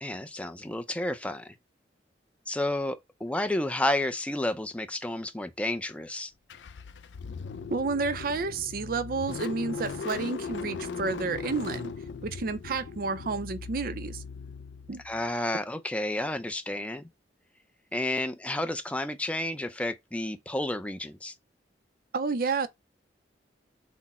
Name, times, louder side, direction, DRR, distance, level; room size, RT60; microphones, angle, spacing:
voice 1, 0.0-1.5 2.5-6.3 15.0-17.1 17.9-21.3, left 1 dB, 5° left, 0.5 m, -31 dB
Car / Engine starting, 6.5-15.3, left 5 dB, 80° left, 0.4 m, -38 dB
voice 2, 7.7-11.9 12.2-14.2 14.9-15.0 22.1-22.7, right 4 dB, 55° right, 0.5 m, -30 dB
6.0 x 2.1 x 4.1 m
head